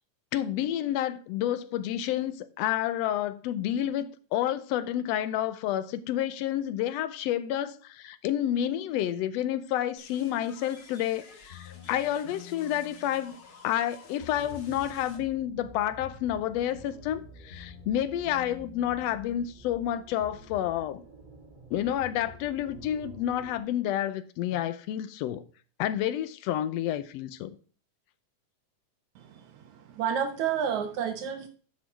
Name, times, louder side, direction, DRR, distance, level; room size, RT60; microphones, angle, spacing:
voice 1, 0.3-13.4 13.6-21.0 21.7-25.5 25.8-27.5, left 11 dB, 75° left, 1.6 m, -29 dB
sound 1, 10.0-15.2, left 4 dB, 45° left, 1.4 m, -52 dB
sound 2, 11.5-13.8 14.2-15.0 15.7-19.8 20.2-21.0 21.7-23.5, left 8 dB, 60° left, 3.2 m, -50 dB
sound 3, 14.4-23.6, right 3 dB, 20° right, 1.6 m, -51 dB
voice 2, 29.2-31.5, right 8 dB, 75° right, 2.3 m, -31 dB
8.5 x 5.8 x 4.6 m
omnidirectional pair, 3.4 m